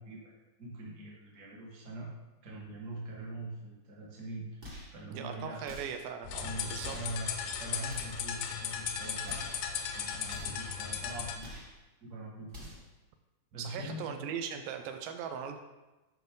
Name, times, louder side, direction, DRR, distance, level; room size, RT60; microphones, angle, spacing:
voice 1, 0.0-2.1 2.4-4.6 4.9-5.8 6.4-11.5 12.0-12.7 13.5-14.3, right 1 dB, 35° right, -4 dB, 1.3 m, -43 dB
sound 1, 4.6-5.0 5.6-6.1 6.8-7.2 7.8-8.3 9.2-9.6 10.3-10.7 11.4-11.8 12.5-12.9, left 1 dB, 50° right, 0.6 m, -47 dB
voice 2, 5.1-7.0 10.4-10.6 13.6-15.6, right 7 dB, 85° right, 6 dB, 2.5 m, -39 dB
sound 2, 6.2-11.4, left 7 dB, 80° left, 2.2 m, -37 dB
9.6 x 5.6 x 3.8 m, 1.1 s
omnidirectional pair, 4.2 m